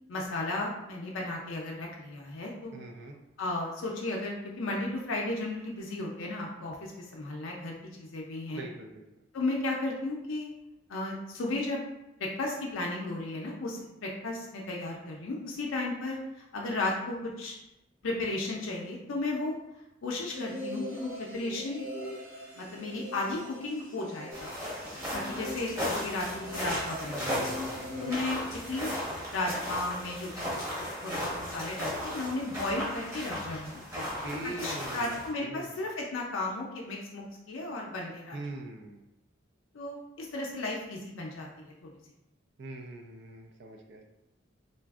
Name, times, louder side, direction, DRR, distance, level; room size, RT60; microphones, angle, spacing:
voice 1, 0.1-2.8 3.4-8.6 9.3-10.5 10.9-11.8 12.2-17.6 18.0-19.6 20.0-21.9 22.5-24.5 25.1-27.4 28.0-28.9 29.3-30.4 30.8-33.8 34.4-38.4 39.7-41.9, left 2 dB, 80° left, -2 dB, 0.5 m, -34 dB
voice 2, 2.7-3.1 8.5-9.1 27.2-28.1 33.9-35.1 35.4-35.8 38.3-39.0 42.6-44.0, right 1 dB, 60° right, 2 dB, 0.4 m, -42 dB
sound 1, 20.3-28.2, left 1 dB, 80° right, 1.4 m, -42 dB
sound 2, 24.3-35.3, equal, 15° right, 0.9 m, -36 dB
sound 3, 25.3-30.4, equal, 25° left, 0.4 m, -56 dB
3.8 x 2.4 x 2.3 m, 0.92 s
head